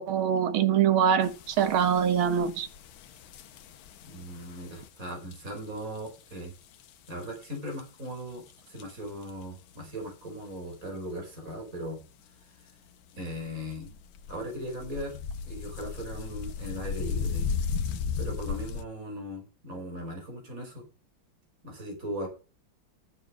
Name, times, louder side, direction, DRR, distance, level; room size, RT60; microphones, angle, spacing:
voice 1, 0.0-2.7, right 8 dB, 85° right, 1.9 m, -24 dB
sound 1, 1.2-6.5 6.7-7.8 8.1-8.2 8.5-8.6 8.8-8.9 9.2-9.4 9.7-9.8 10.5-10.6 11.5-11.8 12.4-12.5 12.9-13.2 13.4-18.8, left 6 dB, 85° left, 1.7 m, -36 dB
voice 2, 4.0-6.5 7.1-12.0 12.5-12.7 13.1-13.9 14.3-15.2 15.4-17.5 18.2-20.8 21.6-22.3, equal, 40° right, 4.9 m, -38 dB
12.0 x 7.3 x 6.3 m
omnidirectional pair, 2.2 m